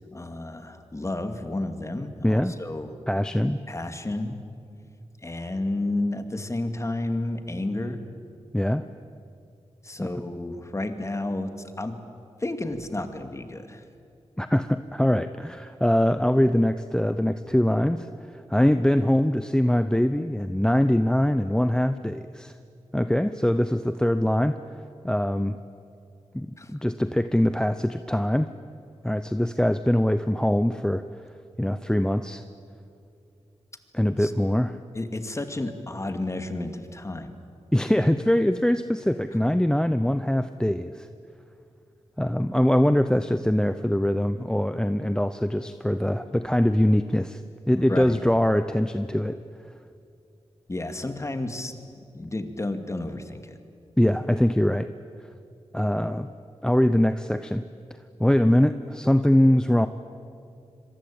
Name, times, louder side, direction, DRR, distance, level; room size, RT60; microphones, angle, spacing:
voice 1, 0.1-2.9 3.7-4.4 5.2-8.0 9.8-11.9 12.4-13.8 26.6-26.7 34.2-34.3 34.9-37.3 47.9-48.2 50.7-51.7 52.1-53.6, left 2 dB, 25° left, 7 dB, 2.3 m, -31 dB
voice 2, 2.2-2.5 3.1-3.6 8.5-8.8 10.0-10.1 14.4-22.6 22.9-24.6 25.0-25.6 26.3-28.5 29.0-31.0 31.6-32.4 33.9-34.8 37.7-41.1 42.2-47.4 47.7-49.4 54.0-54.9 55.7-56.3 56.6-57.6 58.2-59.9, left 1 dB, 5° left, 11 dB, 0.7 m, -23 dB
26.5 x 23.0 x 8.8 m, 2.5 s
wide cardioid pair, 80°, 11 cm